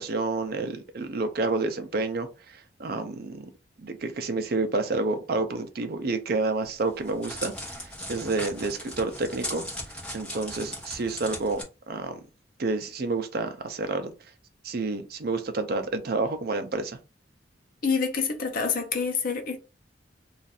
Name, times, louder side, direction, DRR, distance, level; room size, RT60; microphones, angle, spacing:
voice 1, 0.0-3.4 3.8-7.8 8.1-9.6 10.1-12.2 12.6-14.1 14.6-17.0, right 3 dB, 55° right, 0.5 m, -29 dB
Crackle, 6.7-11.6, left 1 dB, 5° left, 1.0 m, -38 dB
voice 2, 17.8-19.6, left 5 dB, 50° left, 0.7 m, -27 dB
2.6 x 2.4 x 4.0 m
head